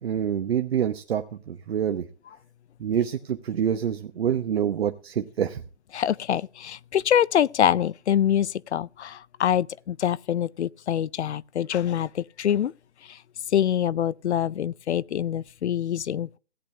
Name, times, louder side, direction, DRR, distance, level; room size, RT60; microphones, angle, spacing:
voice 1, 0.0-2.1 2.8-5.6, right 9 dB, 65° right, 0.9 m, -26 dB
voice 2, 5.9-12.7 13.1-13.2 13.5-16.4, left 10 dB, 80° left, 0.5 m, -25 dB
16.5 x 8.6 x 3.3 m
hypercardioid pair, 145°, 33 cm